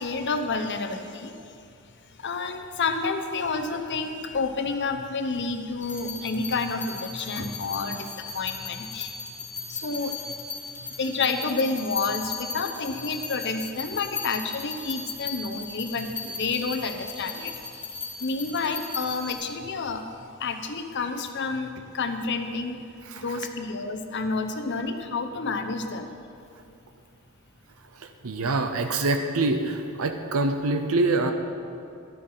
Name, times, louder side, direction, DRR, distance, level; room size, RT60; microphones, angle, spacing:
voice 1, 0.0-1.3 2.2-9.2 9.7-10.3 10.8-17.8 18.2-20.0 20.4-22.8 23.1-26.1, left 4 dB, 55° left, 7 dB, 0.9 m, -29 dB
sound 1, 5.8-19.3, left 4 dB, 10° left, 1.7 m, -37 dB
voice 2, 23.0-23.4 27.9-31.3, right 2 dB, 85° right, 6 dB, 0.7 m, -26 dB
12.5 x 8.8 x 5.7 m, 2.5 s
head